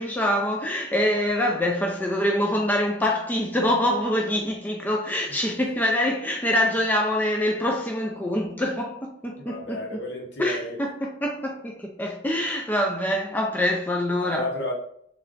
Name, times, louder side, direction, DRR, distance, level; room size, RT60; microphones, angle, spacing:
voice 1, 0.0-10.0 10.4-14.5, left 1 dB, 10° left, 0.3 m, -25 dB
voice 2, 9.4-10.8 14.2-14.7, left 1 dB, 65° left, 0.9 m, -32 dB
3.2 x 2.4 x 3.7 m
head